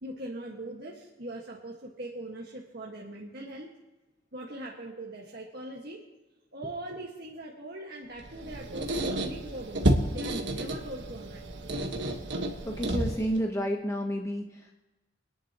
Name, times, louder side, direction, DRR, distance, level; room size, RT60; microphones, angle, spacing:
voice 1, 0.0-3.7 4.3-6.0 6.5-11.4, right 1 dB, 55° right, -2 dB, 1.7 m, -41 dB
Squeak, 8.2-13.4, right 1 dB, 70° right, 1.4 m, -31 dB
voice 2, 12.7-14.7, equal, 15° left, 1 dB, 1.0 m, -30 dB
24.5 x 10.5 x 3.0 m, 1.1 s
head